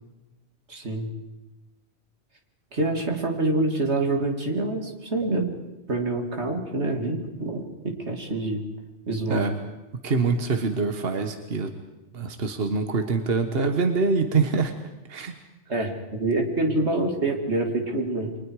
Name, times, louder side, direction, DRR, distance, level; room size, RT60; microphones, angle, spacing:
voice 1, 0.7-1.1 2.7-5.5 5.9-8.6 9.1-9.4 15.7-15.9 16.2-18.3, right 2 dB, 90° right, 3 dB, 3.1 m, -26 dB
voice 2, 10.0-11.7 12.1-14.7 15.1-15.3, right 4 dB, 65° right, 7 dB, 1.5 m, -24 dB
29.5 x 24.0 x 4.8 m, 1.0 s
omnidirectional pair, 1.1 m